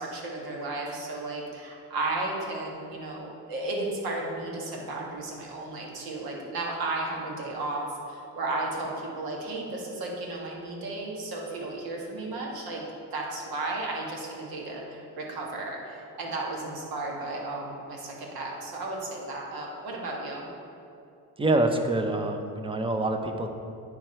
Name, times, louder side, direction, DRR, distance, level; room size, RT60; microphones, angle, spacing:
voice 1, 0.0-12.8 13.1-20.4, right 2 dB, 70° right, -1 dB, 1.7 m, -34 dB
voice 2, 21.4-23.5, right 2 dB, 15° right, 5 dB, 0.6 m, -26 dB
9.4 x 4.7 x 4.4 m, 2.6 s
cardioid pair, 100°, 38 cm